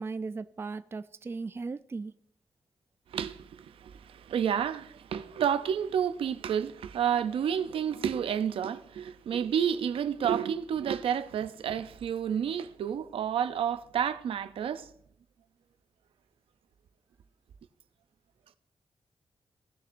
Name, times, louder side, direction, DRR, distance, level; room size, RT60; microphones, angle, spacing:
voice 1, 0.0-2.1, right 4 dB, 25° right, 0.3 m, -37 dB
voice 2, 3.1-14.9, right 8 dB, 85° right, 0.5 m, -30 dB
17.0 x 6.6 x 2.6 m
wide cardioid pair, 115°, 9 cm